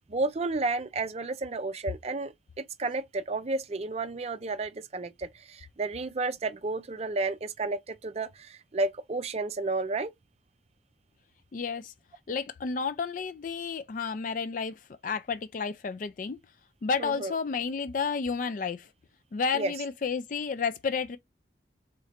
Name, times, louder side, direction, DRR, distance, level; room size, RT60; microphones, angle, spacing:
voice 1, 0.1-10.1 17.0-17.3 19.5-19.7, right 3 dB, 35° right, 0.5 m, -32 dB
voice 2, 11.5-11.9 12.3-16.4 16.8-18.9 19.3-21.2, left 5 dB, 45° left, 0.3 m, -31 dB
3.7 x 3.1 x 4.2 m
head